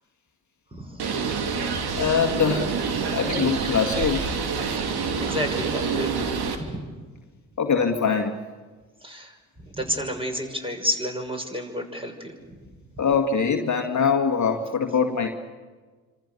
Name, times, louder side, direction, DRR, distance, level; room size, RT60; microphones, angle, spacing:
voice 1, 0.7-1.4 5.2-6.8 9.0-12.6, left 1 dB, 10° right, 3 dB, 6.4 m, -31 dB
Bird, 1.0-6.6, right 5 dB, 60° right, 2.9 m, -27 dB
voice 2, 2.0-2.7 3.1-4.4 7.6-8.4 13.0-15.3, left 6 dB, 40° left, 3 dB, 2.0 m, -23 dB
27.5 x 26.0 x 6.9 m, 1.4 s
hypercardioid pair, 45°, 42 cm